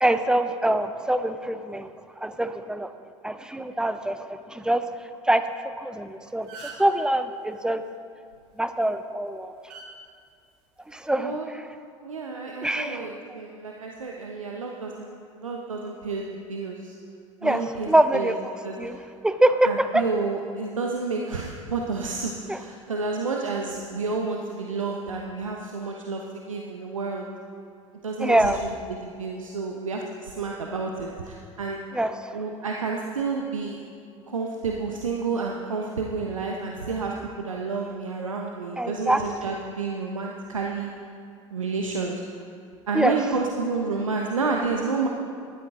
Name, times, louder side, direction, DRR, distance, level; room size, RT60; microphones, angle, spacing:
voice 1, 0.0-1.9 2.2-2.9 3.2-4.9 5.2-7.8 8.6-9.6 10.9-11.6 12.6-13.4 17.4-18.5 18.8-19.0 19.2-20.0 22.5-22.6 28.2-28.6 31.9-32.4 38.8-39.5 42.9-43.2, right 1 dB, 5° right, 10 dB, 0.7 m, -24 dB
sound 1, 5.9-6.0 6.3-7.0 8.6-8.8 9.7-9.9 10.9-11.1, right 4 dB, 50° right, 2.8 m, -41 dB
voice 2, 11.2-11.5 12.0-17.0 17.4-18.3 18.6-18.8 19.6-27.3 28.0-31.8 32.3-33.8 34.3-40.9 41.5-42.4 42.9-45.1, right 4 dB, 80° right, 0 dB, 1.0 m, -30 dB
19.0 x 12.5 x 3.7 m, 2.3 s
figure-of-eight pair, 75°, 17 cm